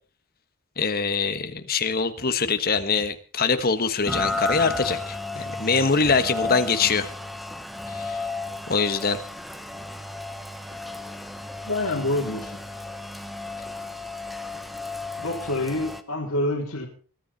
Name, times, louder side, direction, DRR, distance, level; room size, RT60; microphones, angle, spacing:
voice 1, 0.8-7.1 7.9-8.2 8.7-9.2, left 4 dB, 45° left, 9 dB, 1.5 m, -24 dB
Rain, 4.1-16.0, left 2 dB, ahead, 1.0 m, -33 dB
voice 2, 11.7-12.6 15.2-16.9, left 1 dB, 70° left, -2 dB, 3.1 m, -27 dB
21.5 x 13.0 x 4.2 m, 0.40 s
head